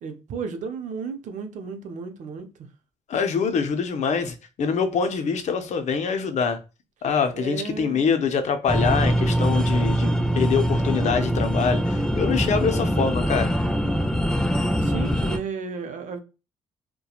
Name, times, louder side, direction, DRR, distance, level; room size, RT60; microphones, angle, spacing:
voice 1, 0.0-2.7 7.3-8.1 14.8-16.2, right 5 dB, 70° right, 0.6 m, -33 dB
voice 2, 3.1-6.6 7.0-13.5, left 6 dB, 60° left, 0.6 m, -25 dB
sound 1, 8.7-15.4, equal, 5° left, 0.4 m, -23 dB
2.8 x 2.2 x 2.3 m
cardioid pair, 65°, 13 cm